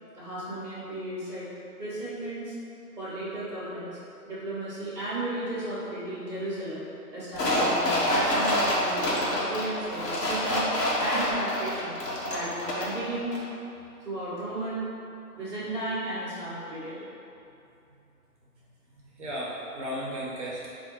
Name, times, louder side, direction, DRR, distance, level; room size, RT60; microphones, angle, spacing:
voice 1, 0.1-1.5 1.8-2.5 3.0-4.0 4.2-6.8 7.1-10.6 11.0-12.0 12.2-13.3 14.0-14.9 15.3-17.1, right 1 dB, 5° right, -17 dB, 0.7 m, -34 dB
sound 1, 7.3-13.0 13.3-13.4, left 1 dB, 85° left, 0.9 m, -27 dB
voice 2, 19.0-20.7, equal, 45° right, -6 dB, 0.7 m, -35 dB
4.2 x 2.2 x 2.9 m, 2.8 s
figure-of-eight pair, 135°, 48 cm